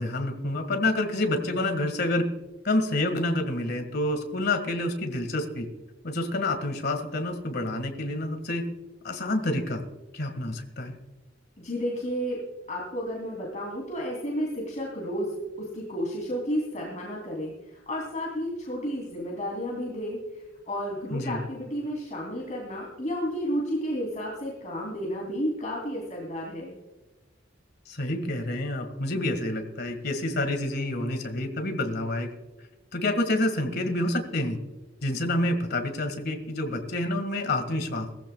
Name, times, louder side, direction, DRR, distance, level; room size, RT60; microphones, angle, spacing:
voice 1, 0.0-2.3 2.6-5.7 6.0-8.7 9.0-9.8 10.1-10.9 21.1-21.5 27.9-32.3 32.9-34.6 35.0-38.1, left 1 dB, 55° left, 7 dB, 1.8 m, -28 dB
voice 2, 11.6-12.4 12.7-26.7, equal, 40° left, -3 dB, 3.0 m, -32 dB
20.0 x 15.0 x 2.3 m, 1.1 s
head